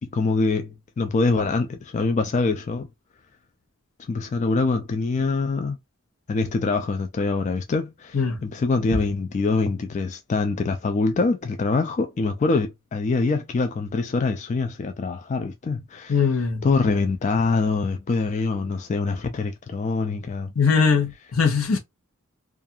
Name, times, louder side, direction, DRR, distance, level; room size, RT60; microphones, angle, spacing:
voice 1, 0.1-2.9 4.1-5.8 6.3-20.5, left 3 dB, 35° left, 0.3 m, -24 dB
voice 2, 16.1-16.6 20.6-21.8, left 5 dB, 80° left, 0.9 m, -21 dB
2.5 x 2.4 x 2.6 m
head